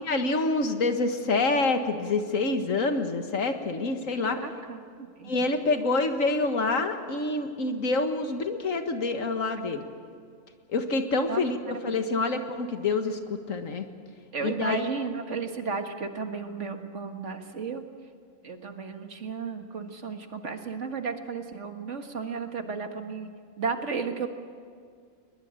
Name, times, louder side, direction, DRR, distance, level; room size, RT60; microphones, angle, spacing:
voice 1, 0.0-4.4 5.3-9.8 10.7-13.8 14.4-14.9, left 3 dB, 90° left, 6 dB, 2.0 m, -27 dB
voice 2, 4.2-5.4 11.3-12.0 14.3-17.8 18.4-23.3 23.6-24.3, right 5 dB, 65° right, 6 dB, 2.0 m, -34 dB
21.5 x 21.0 x 8.9 m, 2.1 s
omnidirectional pair, 1.3 m